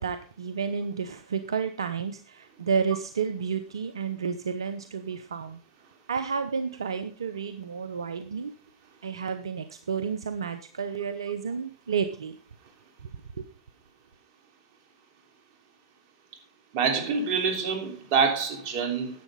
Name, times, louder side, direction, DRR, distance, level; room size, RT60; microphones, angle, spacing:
voice 1, 0.0-5.6 6.1-8.5 9.0-12.4 13.0-13.1 13.4-13.5, right 6 dB, 85° right, 0.7 m, -31 dB
voice 2, 16.7-19.1, right 5 dB, 55° right, 3.4 m, -26 dB
10.5 x 8.2 x 5.5 m
hypercardioid pair, 95°, 3 cm